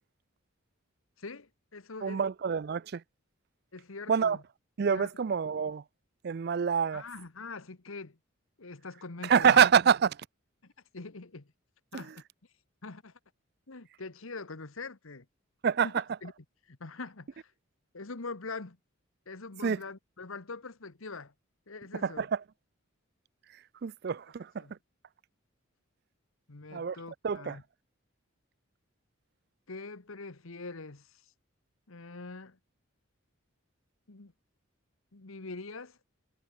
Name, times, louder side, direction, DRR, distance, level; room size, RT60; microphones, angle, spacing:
voice 1, 1.2-2.2 3.7-4.4 4.9-5.1 6.9-8.2 8.6-9.6 10.6-11.5 11.9-12.1 12.8-13.1 13.7-15.3 15.8-16.3 16.7-17.5 17.9-18.8 19.3-21.3 21.7-22.3 24.6-24.7 26.5-27.6 29.7-31.3 31.9-32.6 34.1-34.3 35.1-36.0, left 3 dB, 80° left, 1.3 m, -43 dB
voice 2, 2.0-3.0 4.1-4.4 4.8-5.8 6.2-7.0 9.2-10.3 11.9-12.1 15.6-16.0 19.6-19.8 22.0-22.4 23.5-24.7 26.7-27.0 27.2-27.6, right 7 dB, 50° right, 0.4 m, -26 dB
head